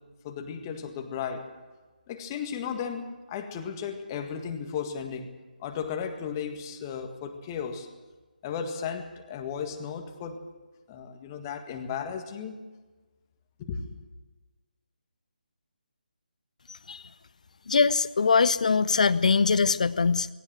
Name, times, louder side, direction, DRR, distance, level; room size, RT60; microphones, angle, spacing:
voice 1, 0.2-1.5 2.1-5.3 5.6-7.9 8.4-10.4 10.9-12.6 13.6-13.9, left 7 dB, 20° left, 5 dB, 1.8 m, -35 dB
voice 2, 17.7-20.3, left 5 dB, 50° left, 17 dB, 0.8 m, -22 dB
19.5 x 18.0 x 7.7 m, 1.2 s
figure-of-eight pair, 150°, 5 cm